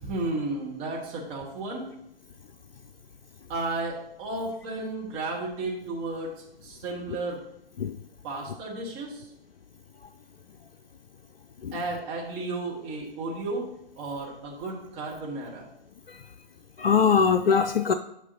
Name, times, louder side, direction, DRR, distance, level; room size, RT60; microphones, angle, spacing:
voice 1, 0.0-1.9 3.5-6.3 6.6-7.4 8.2-9.3 11.7-13.7 14.0-15.7, right 2 dB, 20° right, -2 dB, 1.4 m, -33 dB
voice 2, 16.8-17.9, left 6 dB, 70° left, 7 dB, 0.5 m, -22 dB
10.0 x 5.4 x 2.8 m, 0.78 s
figure-of-eight pair, 125°, 30 cm